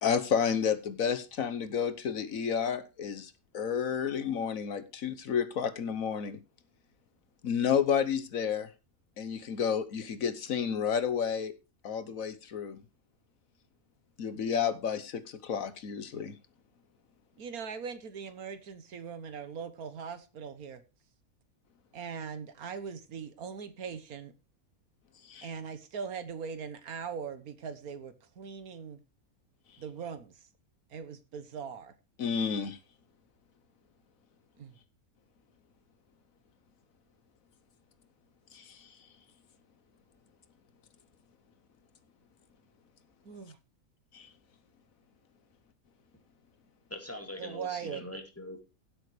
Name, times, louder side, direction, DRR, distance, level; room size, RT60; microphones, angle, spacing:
voice 1, 0.0-6.4 7.4-8.7 9.2-11.5 11.8-12.8 14.2-16.3 25.3-25.5 32.2-32.8 38.5-38.9 44.1-44.3, left 7 dB, 70° left, 12 dB, 1.5 m, -31 dB
voice 2, 17.4-20.8 21.9-24.3 25.4-29.0 29.8-30.3 30.9-31.9 34.6-34.7 43.2-43.6 47.4-48.0, right 6 dB, 85° right, 12 dB, 1.7 m, -40 dB
voice 3, 46.9-48.6, left 1 dB, 10° left, 3 dB, 2.6 m, -42 dB
16.0 x 8.2 x 3.2 m, 0.28 s
omnidirectional pair, 1.5 m